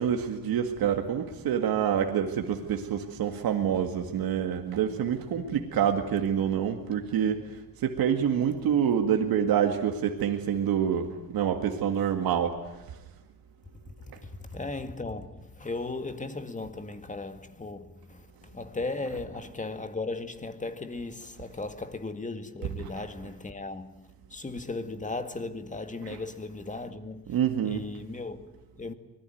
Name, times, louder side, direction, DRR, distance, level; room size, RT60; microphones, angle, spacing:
voice 1, 0.0-7.4 7.8-12.6 14.1-14.2 22.6-23.0 26.0-26.2 27.3-27.8, right 8 dB, 90° right, 2.2 m, -27 dB
voice 2, 14.2-27.4 27.6-28.9, left 3 dB, 20° left, 2.1 m, -37 dB
25.0 x 20.5 x 9.3 m
cardioid pair, 120°, 35 cm